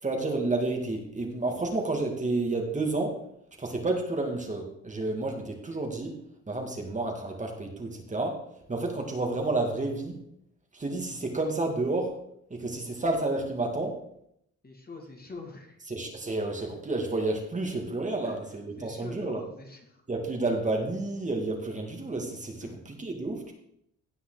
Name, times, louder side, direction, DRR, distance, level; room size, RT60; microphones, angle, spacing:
voice 1, 0.0-3.2 3.6-6.2 6.5-8.4 8.7-10.2 10.7-12.1 12.5-14.0 15.9-19.4 20.1-23.5, right 2 dB, 25° right, 2 dB, 2.1 m, -30 dB
voice 2, 14.6-15.8 18.2-20.0 22.6-22.9, left 3 dB, 30° left, 1 dB, 2.4 m, -45 dB
16.5 x 5.6 x 4.0 m, 0.73 s
cardioid pair, 90°, 30 cm